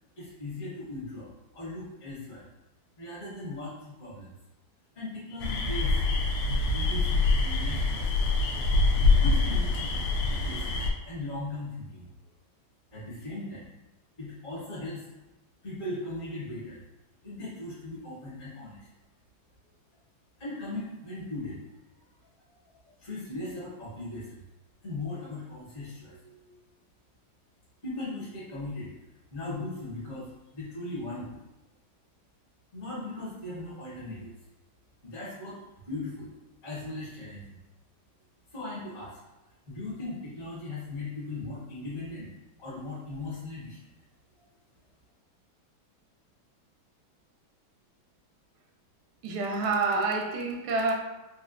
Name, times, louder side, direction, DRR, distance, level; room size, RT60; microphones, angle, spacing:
voice 1, 0.2-2.5 3.0-4.3 4.9-6.0 6.5-8.2 9.2-9.9 10.3-12.1 12.9-13.7 14.2-15.1 15.6-16.8 17.2-18.9 20.4-21.6 22.5-22.6 23.0-24.4 24.8-26.6 27.8-28.9 29.3-31.4 32.7-34.3 35.0-36.3 36.6-37.5 38.5-39.2 39.7-42.3 42.6-43.8 44.4-44.5, left 2 dB, 45° left, -8 dB, 1.5 m, -38 dB
sound 1, 5.4-10.9, left 3 dB, 90° left, 1.4 m, -25 dB
voice 2, 49.2-50.9, right 3 dB, 85° right, 1 dB, 1.5 m, -27 dB
4.1 x 2.4 x 2.4 m, 1.0 s
omnidirectional pair, 2.2 m